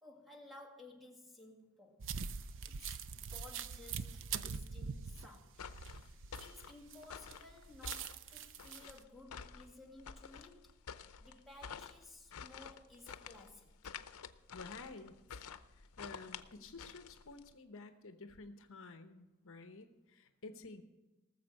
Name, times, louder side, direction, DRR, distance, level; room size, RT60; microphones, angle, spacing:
voice 1, 0.0-2.1 2.6-5.7 6.4-10.8 11.2-13.8, left 2 dB, ahead, 0 dB, 2.1 m, -57 dB
sound 1, 2.0-7.0 7.3-8.9, right 6 dB, 60° right, 0.5 m, -43 dB
sound 2, 5.5-17.5, left 6 dB, 85° left, 0.7 m, -50 dB
voice 2, 14.5-20.8, left 3 dB, 65° left, 7 dB, 1.0 m, -52 dB
19.0 x 7.1 x 6.5 m, 1.1 s
head